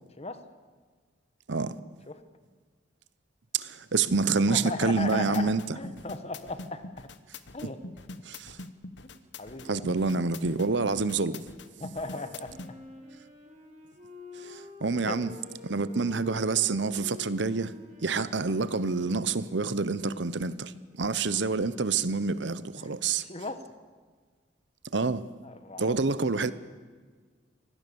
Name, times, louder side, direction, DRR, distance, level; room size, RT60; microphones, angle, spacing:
voice 1, 3.5-5.8 8.2-8.6 9.6-11.4 14.4-15.3 15.6-17.7 18.0-23.2 24.9-25.3 25.8-26.5, right 4 dB, 65° right, 0.8 m, -27 dB
voice 2, 4.5-7.1 7.5-7.8 9.4-9.8 11.8-12.5 15.1-15.2 22.8-22.9 23.2-23.6 25.4-26.0, left 3 dB, 35° left, 1.4 m, -36 dB
sound 1, 5.0-12.7, left 2 dB, 65° left, 1.1 m, -43 dB
Wind instrument woodwind instrument, 11.9-20.5, left 3 dB, 40° right, 4.5 m, -49 dB
25.0 x 18.0 x 7.0 m
head